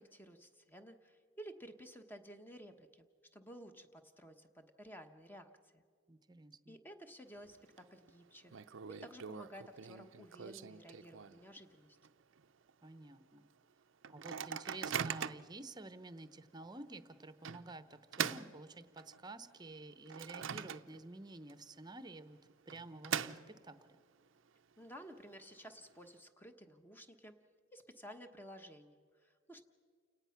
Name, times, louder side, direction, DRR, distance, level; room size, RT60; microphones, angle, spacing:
voice 1, 0.0-5.8 6.7-12.0 24.8-27.4 27.7-29.6, equal, 10° left, 7 dB, 1.1 m, -54 dB
voice 2, 6.1-6.8 12.8-13.4 14.1-22.4 22.7-24.0, right 2 dB, 20° right, 12 dB, 0.8 m, -51 dB
Microwave oven, 7.3-7.8 8.1-8.2 8.5-11.6 12.0-12.1 12.4-12.7 13.2-13.3 14.0-15.6 16.2-16.3 17.4-19.3 19.7-21.2 21.5-21.6 22.5-23.9, right 8 dB, 80° right, 0.6 m, -42 dB
29.0 x 18.0 x 5.8 m, 2.1 s
head